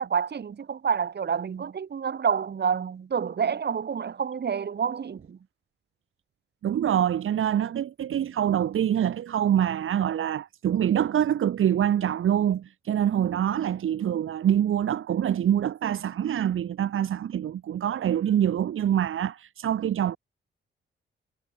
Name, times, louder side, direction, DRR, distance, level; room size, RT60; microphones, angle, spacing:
voice 1, 0.0-5.4, right 7 dB, 55° right, 7.0 m, -28 dB
voice 2, 6.6-20.2, right 10 dB, 80° right, 2.4 m, -25 dB
wide cardioid pair, 125°, 21 cm